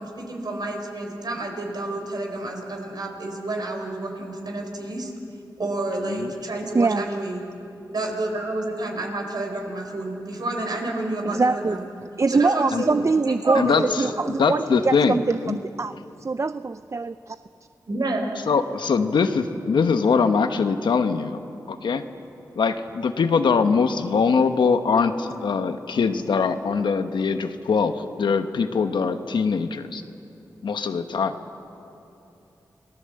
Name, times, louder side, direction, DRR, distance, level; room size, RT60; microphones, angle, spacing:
voice 1, 0.0-5.1 5.6-7.4 7.9-11.8 12.3-14.1 17.9-18.3, right 2 dB, 60° right, 2 dB, 4.5 m, -29 dB
voice 2, 11.2-15.9 16.2-17.4, right 4 dB, 40° right, 12 dB, 0.5 m, -24 dB
voice 3, 13.5-14.1 14.4-15.2 15.4-15.6 18.5-21.4 21.7-22.0 22.6-30.0 30.6-31.3, left 5 dB, 85° left, 8 dB, 1.1 m, -22 dB
27.5 x 18.5 x 7.8 m, 2.8 s
cardioid pair, 55°, 8 cm